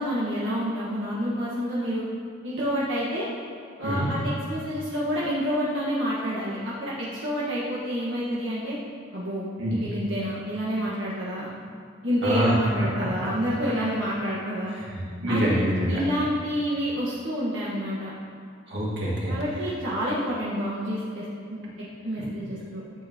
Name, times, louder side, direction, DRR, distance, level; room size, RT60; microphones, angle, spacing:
voice 1, 0.0-2.0 2.4-3.3 3.8-8.8 9.1-11.5 12.0-14.7 15.3-15.6 15.9-18.1 19.3-21.6 22.0-22.8, equal, 80° right, -8 dB, 1.5 m, -28 dB
voice 2, 12.2-12.6 13.0-13.3 14.8-16.0 18.7-19.4, right 1 dB, 60° right, -6 dB, 2.2 m, -26 dB
12.5 x 7.6 x 3.0 m, 2.3 s
head